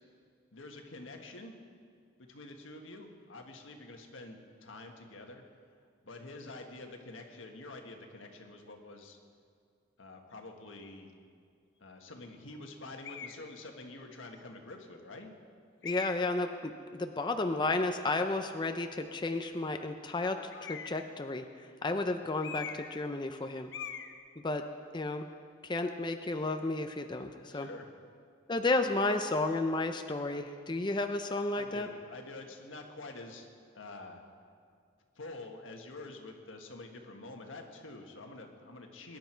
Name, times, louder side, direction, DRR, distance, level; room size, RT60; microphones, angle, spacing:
voice 1, 0.5-1.5 2.2-5.4 6.0-9.2 10.0-11.1 11.8-15.3 27.4-27.9 31.5-33.5 33.7-34.2 35.1-39.2, left 2 dB, 85° left, 3 dB, 1.6 m, -47 dB
sound 1, 13.0-13.4 14.2-14.3 15.8-16.4 20.5-21.1 22.4-23.0 23.3-23.4 23.7-24.1, left 7 dB, 65° left, 0.9 m, -42 dB
voice 2, 15.8-20.4 20.6-23.7 24.4-24.6 24.9-25.3 25.6-27.7 28.5-31.9, left 2 dB, 25° left, 6 dB, 0.6 m, -32 dB
22.0 x 10.5 x 4.5 m, 2.2 s
head